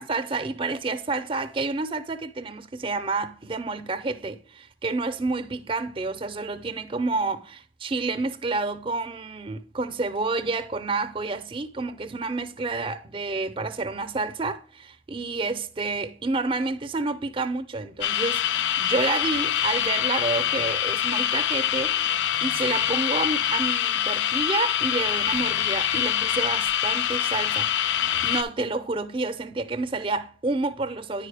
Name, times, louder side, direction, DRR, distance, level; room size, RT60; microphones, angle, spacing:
voice 1, 0.0-22.0 22.4-27.7 28.2-31.3, right 3 dB, 30° right, 0.5 m, -29 dB
sound 1, 18.0-28.4, left 10 dB, 85° left, 0.4 m, -25 dB
9.6 x 4.9 x 3.3 m
head